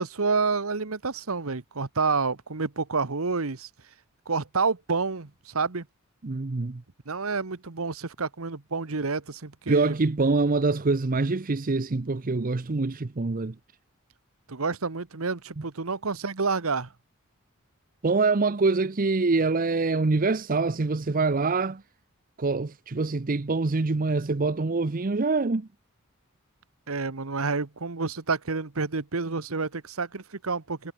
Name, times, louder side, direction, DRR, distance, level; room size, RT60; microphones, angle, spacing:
voice 1, 0.0-3.7 4.3-5.9 7.1-9.9 14.5-16.9 26.9-30.9, right 4 dB, 75° right, 1.2 m, -29 dB
voice 2, 6.2-6.8 9.7-13.5 18.0-21.8 22.4-25.7, right 3 dB, 40° right, 0.7 m, -25 dB
head